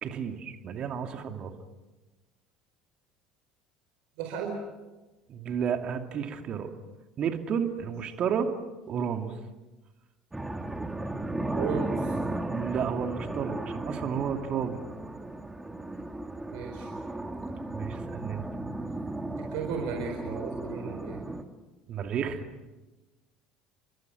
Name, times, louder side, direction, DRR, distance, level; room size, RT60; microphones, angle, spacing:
voice 1, 0.0-1.5 5.3-6.7 7.2-8.5 8.9-9.3 12.5-14.8 17.7-18.4 21.9-22.4, right 7 dB, 45° right, 6 dB, 2.7 m, -31 dB
voice 2, 4.2-4.6 11.5-12.2 16.5-16.9 19.4-21.2, right 6 dB, 65° right, 2 dB, 4.5 m, -35 dB
sound 1, 10.3-21.4, right 2 dB, 10° right, 2.3 m, -35 dB
30.0 x 24.5 x 6.3 m, 1.1 s
figure-of-eight pair, 65°, 2 cm